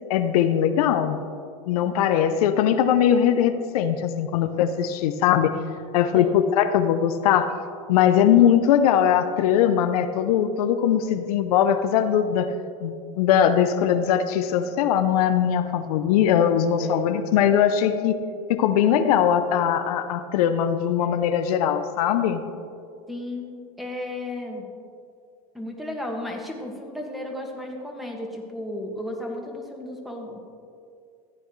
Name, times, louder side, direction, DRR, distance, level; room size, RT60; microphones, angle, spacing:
voice 1, 0.1-1.2 1.7-5.5 5.9-7.5 7.9-12.5 12.8-18.2 18.5-22.4, left 9 dB, 75° left, 9 dB, 0.6 m, -21 dB
voice 2, 23.1-23.5 23.8-24.7 25.5-30.4, left 1 dB, ahead, 1 dB, 1.7 m, -34 dB
14.5 x 8.8 x 3.2 m, 2.4 s
hypercardioid pair, 105°, 19 cm